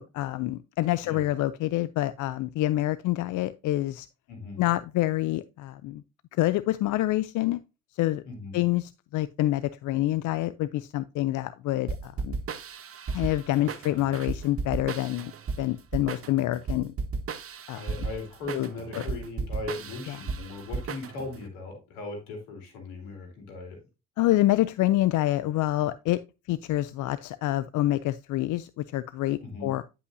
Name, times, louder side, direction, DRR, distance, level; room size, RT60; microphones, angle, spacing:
voice 1, 0.0-4.1 4.6-6.0 6.3-7.6 7.9-8.2 8.5-12.4 13.1-15.3 15.6-16.9 17.7-17.8 18.5-19.0 20.1-20.2 24.2-26.2 26.5-29.8, left 15 dB, 65° left, 0.5 m, -27 dB
voice 2, 4.3-4.7 8.2-8.6 13.6-13.7 17.7-23.8 29.4-29.8, left 3 dB, 85° left, 2.8 m, -38 dB
sound 1, 11.9-21.4, right 4 dB, 40° right, 0.9 m, -35 dB
9.8 x 5.6 x 2.7 m
hypercardioid pair, 50°, 33 cm